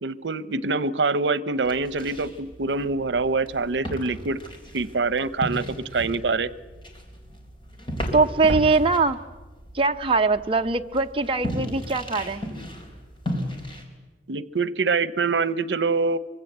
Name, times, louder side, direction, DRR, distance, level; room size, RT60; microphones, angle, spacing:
voice 1, 0.0-4.4 4.7-6.5 14.3-16.2, right 4 dB, 85° right, 17 dB, 0.8 m, -25 dB
sound 1, 1.6-13.8, equal, 30° left, 4.1 m, -35 dB
voice 2, 8.1-9.2 9.7-12.4, right 3 dB, 30° right, 5 dB, 0.7 m, -22 dB
24.5 x 24.0 x 8.0 m, 1.2 s
head